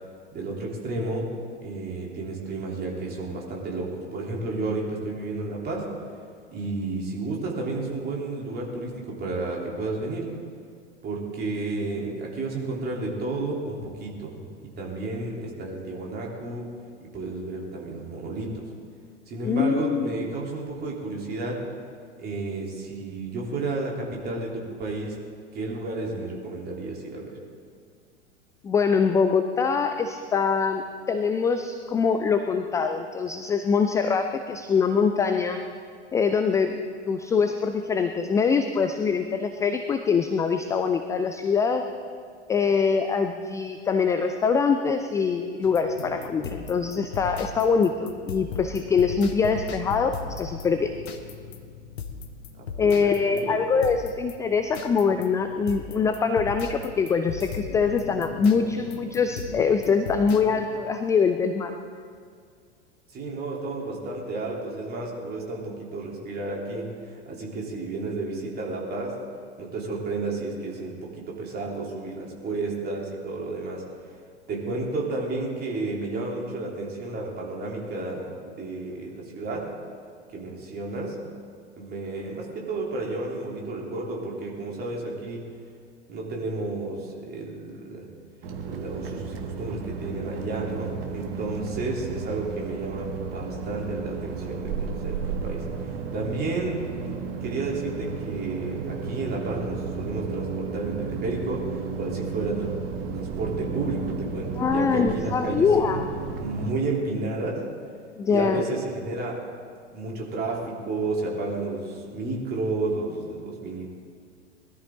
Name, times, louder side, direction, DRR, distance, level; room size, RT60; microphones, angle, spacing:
voice 1, 0.3-1.3 1.6-5.9 6.5-10.3 11.0-14.3 14.8-16.6 17.1-18.5 19.3-21.6 22.2-25.2 25.5-27.4 52.6-53.6 63.1-69.2 69.6-73.8 74.5-79.7 80.3-81.2 81.8-85.5 86.1-88.0 88.7-96.8 97.0-102.7 103.1-106.0 106.4-107.6 108.3-109.4 109.9-113.9, right 2 dB, 25° right, -2 dB, 3.5 m, -32 dB
voice 2, 19.4-20.1 28.6-35.6 36.1-36.8 37.1-41.8 42.5-50.9 52.8-61.7 104.6-106.1 108.2-108.6, left 5 dB, 10° left, 8 dB, 0.4 m, -24 dB
sound 1, 45.6-60.7, left 4 dB, 60° left, 1.3 m, -38 dB
sound 2, 88.4-106.8, right 5 dB, 55° right, 1.7 m, -33 dB
20.5 x 13.5 x 3.9 m, 2.1 s
figure-of-eight pair, 90°, 35 cm